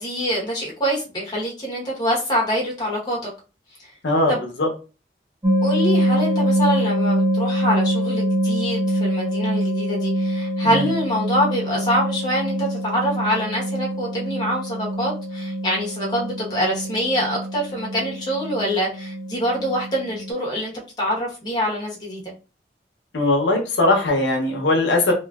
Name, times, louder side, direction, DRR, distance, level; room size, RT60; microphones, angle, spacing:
voice 1, 0.0-3.2 4.3-4.4 5.6-22.2, equal, 25° left, -3 dB, 1.0 m, -25 dB
voice 2, 4.0-4.7 10.6-10.7 23.1-25.1, left 2 dB, 90° left, 2 dB, 0.8 m, -20 dB
sound 1, 5.4-20.3, equal, 25° right, 0.8 m, -24 dB
3.0 x 2.5 x 2.3 m, 0.33 s
head